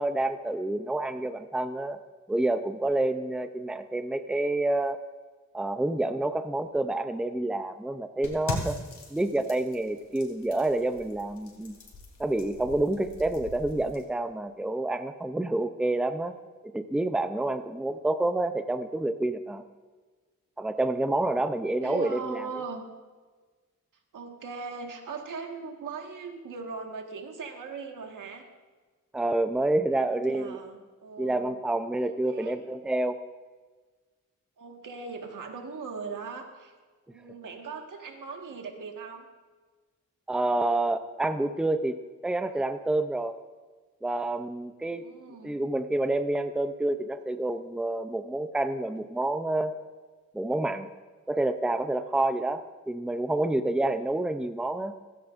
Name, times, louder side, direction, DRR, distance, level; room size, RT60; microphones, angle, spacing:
voice 1, 0.0-2.0 2.3-5.0 5.5-8.8 9.1-11.7 12.2-16.3 16.7-19.6 20.6-22.4 29.1-30.6 31.2-33.2 40.3-43.4 44.0-45.0 45.4-49.7 50.3-50.9 51.3-54.9, right 2 dB, 5° right, 9 dB, 0.6 m, -28 dB
sound 1, 8.2-14.0, left 3 dB, 75° left, 3.4 m, -41 dB
voice 2, 21.8-22.8 24.1-28.5 29.9-31.6 32.3-32.6 34.6-36.7 37.1-39.3 44.8-45.6, right 5 dB, 85° right, 2 dB, 1.7 m, -39 dB
17.0 x 16.0 x 2.6 m, 1.4 s
wide cardioid pair, 110°, 31 cm